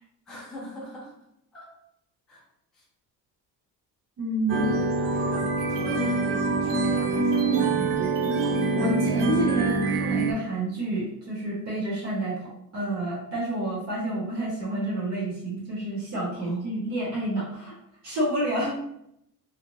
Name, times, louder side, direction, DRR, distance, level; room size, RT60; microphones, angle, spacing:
voice 1, 0.3-1.2 1.5-1.7 2.3-2.4 2.7-2.9 4.5-4.8 5.1-8.0 16.3-16.6 18.5-18.7, equal, ahead, -6 dB, 0.4 m, -40 dB
voice 2, 4.2-4.6 8.8-12.3 12.7-17.7 18.0-18.7, right 1 dB, 45° right, -6 dB, 0.8 m, -29 dB
sound 1, 4.5-10.3, right 3 dB, 60° right, 0.5 m, -25 dB
2.6 x 2.4 x 2.9 m, 0.77 s
cardioid pair, 180°, 38 cm